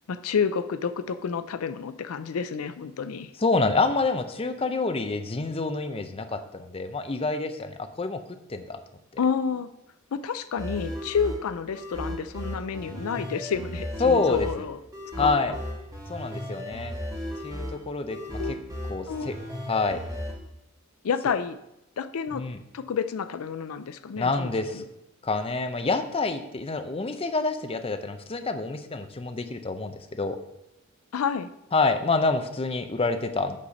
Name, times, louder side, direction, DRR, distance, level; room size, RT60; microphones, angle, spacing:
voice 1, 0.1-3.3 9.2-9.7 10.1-14.8 15.2-15.6 18.4-18.5 19.1-19.3 21.0-21.6 22.0-22.4 22.7-24.8 31.1-31.5, left 6 dB, 85° left, 12 dB, 0.4 m, -29 dB
voice 2, 3.4-8.2 8.5-8.8 14.0-14.5 15.2-15.6 16.1-16.9 17.4-18.2 18.5-18.6 18.9-19.3 19.7-20.0 22.3-22.6 24.2-24.8 25.2-30.4 31.7-33.6, left 3 dB, 25° left, 8 dB, 0.5 m, -27 dB
sound 1, 10.6-20.3, equal, 15° right, 1.7 m, -35 dB
8.5 x 4.1 x 6.4 m, 0.89 s
head